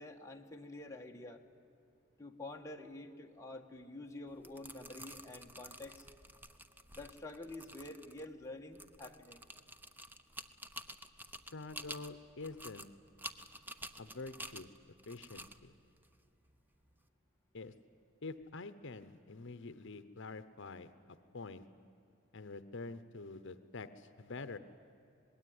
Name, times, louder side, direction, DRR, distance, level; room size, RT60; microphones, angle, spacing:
voice 1, 0.0-1.4 2.2-6.1 6.9-9.4, left 2 dB, 15° left, 2 dB, 1.6 m, -48 dB
sound 1, 4.3-17.0, right 1 dB, 10° right, 0.9 m, -51 dB
voice 2, 11.5-12.9 14.0-14.7 15.1-15.7 17.5-17.7 18.2-21.7 22.3-24.6, left 3 dB, 65° left, 12 dB, 0.9 m, -47 dB
26.5 x 20.5 x 9.5 m, 2.7 s
head